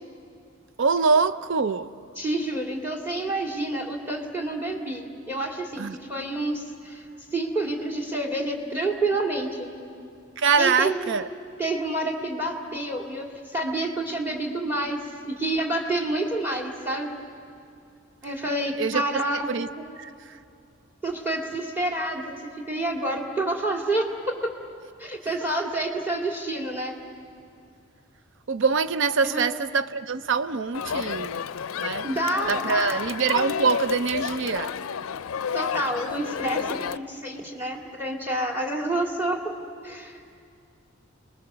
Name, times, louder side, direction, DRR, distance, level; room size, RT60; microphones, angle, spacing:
voice 1, 0.8-1.9 5.8-6.0 10.4-11.3 18.8-19.7 20.0-20.4 28.5-31.4 31.8-32.1 32.5-34.7, right 5 dB, 60° right, 13 dB, 0.5 m, -24 dB
voice 2, 2.2-7.0 7.3-9.7 10.6-11.2 11.6-17.2 18.2-19.9 21.0-22.3 22.7-24.1 25.0-26.9 29.2-29.5 32.0-33.0 35.5-39.4 39.8-40.2, right 1 dB, 10° right, 1 dB, 2.3 m, -28 dB
Crowd, 30.7-37.0, left 7 dB, 85° left, 0.5 m, -31 dB
29.5 x 20.5 x 6.8 m, 2.5 s
head